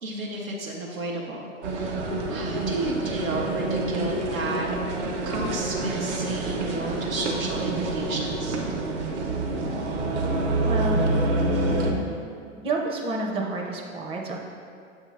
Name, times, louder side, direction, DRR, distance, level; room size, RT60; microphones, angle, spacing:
voice 1, 0.0-4.7 5.2-8.6, right 2 dB, 85° right, -4 dB, 0.9 m, -32 dB
sound 1, 1.6-11.9, right 2 dB, 55° right, 1.0 m, -27 dB
voice 2, 10.6-11.3 12.6-14.4, right 2 dB, 15° right, 0 dB, 0.5 m, -29 dB
7.2 x 2.7 x 5.1 m, 2.3 s
hypercardioid pair, 105°, 40 cm